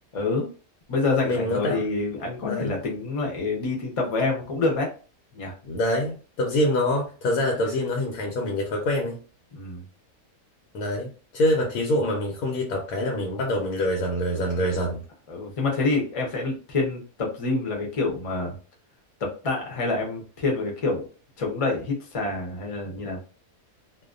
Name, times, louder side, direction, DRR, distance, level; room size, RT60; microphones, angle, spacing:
voice 1, 0.1-0.5 0.9-4.9 5.3-5.5 9.5-9.8 15.3-18.6 19.2-21.1 21.4-23.2, left 3 dB, 40° left, 0.5 m, -27 dB
voice 2, 1.2-1.8 2.5-2.8 5.6-9.2 10.7-15.0, left 1 dB, 90° left, 1.1 m, -25 dB
2.6 x 2.1 x 2.4 m
omnidirectional pair, 1.5 m